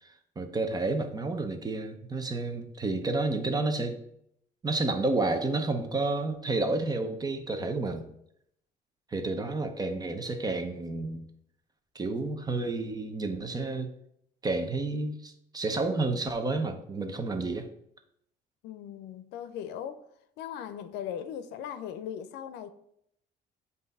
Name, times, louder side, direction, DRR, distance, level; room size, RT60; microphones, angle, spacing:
voice 1, 0.0-4.0 4.6-8.1 9.1-11.2 11.9-13.9 14.4-17.7, right 3 dB, 25° right, 0.8 m, -30 dB
voice 2, 18.6-20.0 20.4-22.7, left 9 dB, 85° left, 0.5 m, -38 dB
7.8 x 2.7 x 5.3 m
cardioid pair, 110°, 17 cm